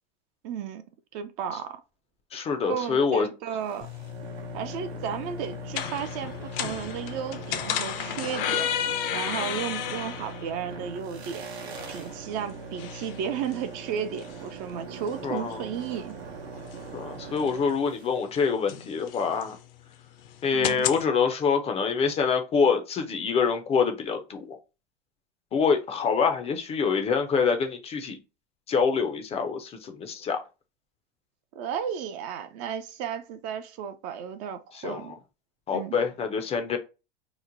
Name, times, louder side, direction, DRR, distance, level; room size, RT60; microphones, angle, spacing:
voice 1, 0.4-0.8 1.1-1.8 2.6-3.9 4.5-8.7 9.1-11.5 11.9-16.2 20.5-20.9 31.6-35.1 35.7-36.0, right 8 dB, 40° right, 0.4 m, -34 dB
voice 2, 2.3-3.3 15.2-15.7 16.9-19.6 20.4-24.6 25.5-28.2 28.7-30.4 34.7-35.2 35.7-36.8, left 5 dB, 20° left, 0.4 m, -26 dB
sound 1, 3.6-18.2, right 6 dB, 85° right, 0.8 m, -42 dB
sound 2, 3.8-21.0, left 10 dB, 60° left, 0.6 m, -35 dB
3.0 x 2.1 x 3.8 m
hypercardioid pair, 110°, 31 cm